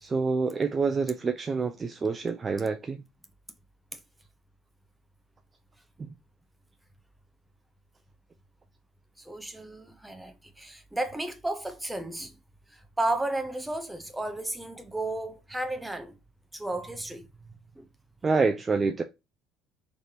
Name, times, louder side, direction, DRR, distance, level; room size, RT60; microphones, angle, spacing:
voice 1, 0.0-3.0 6.0-6.1 18.2-19.0, right 4 dB, 25° right, 0.4 m, -27 dB
voice 2, 9.2-12.4 12.7-16.2 16.5-17.9, right 2 dB, 5° right, 0.8 m, -33 dB
4.2 x 3.3 x 2.8 m
cardioid pair, 115°, 0 cm